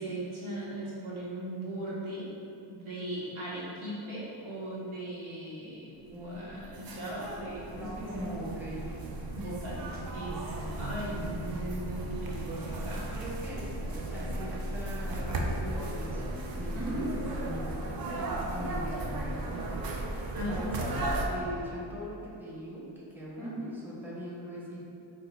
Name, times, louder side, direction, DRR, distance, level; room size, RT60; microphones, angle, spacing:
voice 1, 0.0-2.3 2.7-8.5 9.3-10.4 10.8-13.0 16.7-17.1 20.3-21.2 23.4-23.7, right 1 dB, 80° right, -7 dB, 0.9 m, -38 dB
voice 2, 6.1-7.5 7.7-9.0 10.2-11.8 12.9-19.8 20.4-24.9, equal, 5° right, -6 dB, 0.7 m, -42 dB
sound 1, 6.2-21.3, right 1 dB, 50° right, 0.5 m, -36 dB
3.5 x 2.0 x 3.4 m, 2.8 s
cardioid pair, 55°, 49 cm